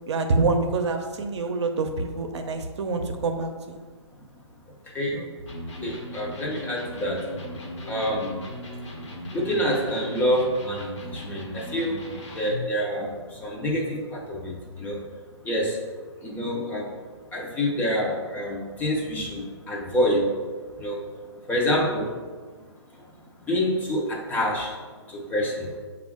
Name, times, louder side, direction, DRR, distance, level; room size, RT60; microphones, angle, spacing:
voice 1, 0.1-3.8 5.1-5.3, right 3 dB, 70° right, 5 dB, 0.6 m, -26 dB
Electric guitar, 5.5-12.8, left 1 dB, 75° left, 1.1 m, -37 dB
voice 2, 5.8-7.2 7.9-8.3 9.3-12.0 12.3-13.1 13.4-15.0 15.5-15.8 16.2-16.9 17.3-20.3 20.8-21.0 21.5-22.1 23.5-24.7 25.1-25.7, equal, 10° left, -1 dB, 0.4 m, -27 dB
6.2 x 2.4 x 3.5 m, 1.4 s
hypercardioid pair, 145°, 15 cm